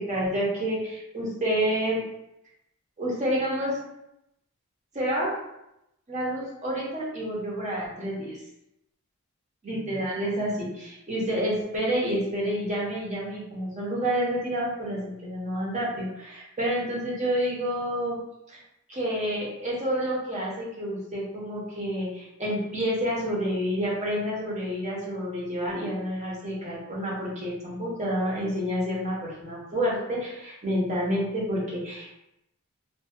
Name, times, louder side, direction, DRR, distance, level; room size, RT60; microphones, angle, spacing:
voice 1, 0.1-2.0 3.0-3.8 4.9-5.3 6.1-8.4 9.6-18.2 18.5-18.6 18.9-32.1, equal, 35° right, -5 dB, 0.7 m, -29 dB
2.5 x 2.2 x 2.3 m, 0.85 s
head